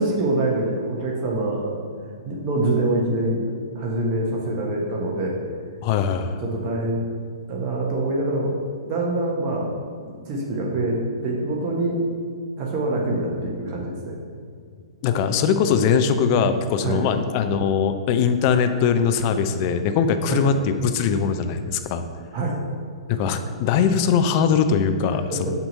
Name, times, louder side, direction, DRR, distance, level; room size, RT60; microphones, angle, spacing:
voice 1, 0.0-1.8 2.2-3.5 3.7-5.4 6.4-7.0 7.5-8.6 8.9-9.7 10.0-12.0 12.6-14.2 16.8-17.0 20.3-20.4 22.3-22.6 25.3-25.5, right 2 dB, 35° right, -2 dB, 1.2 m, -25 dB
voice 2, 5.8-6.4 15.0-22.0 23.1-25.5, left 6 dB, 40° left, 8 dB, 0.5 m, -21 dB
8.0 x 2.9 x 5.3 m, 2.2 s
figure-of-eight pair, 115°, 3 cm